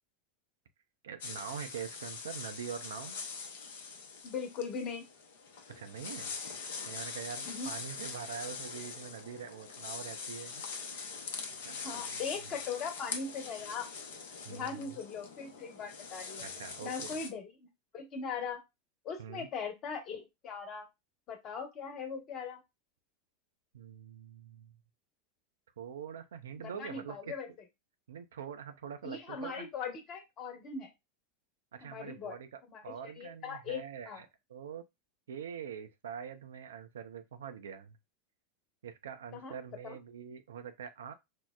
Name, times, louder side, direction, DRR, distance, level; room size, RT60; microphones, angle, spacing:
voice 1, 1.0-3.2 5.8-6.3 6.8-10.6 10.9-11.1 11.5-12.6 14.4-15.0 16.4-17.1 19.2-19.5 23.7-24.8 25.8-27.3 28.1-29.7 31.7-34.8 35.3-38.0 38.8-41.1, right 7 dB, 70° right, 0.4 m, -44 dB
sound 1, 1.2-17.3, left 5 dB, 65° left, 0.7 m, -43 dB
voice 2, 4.2-5.0 7.4-7.7 11.8-13.9 14.5-16.4 16.8-17.5 17.9-18.6 19.0-20.9 21.3-22.6 26.6-27.5 29.0-30.9 31.8-32.4 32.7-34.2 39.3-39.5 39.8-40.0, left 5 dB, 40° left, 1.1 m, -40 dB
4.4 x 2.0 x 2.3 m
figure-of-eight pair, 85°, 0 cm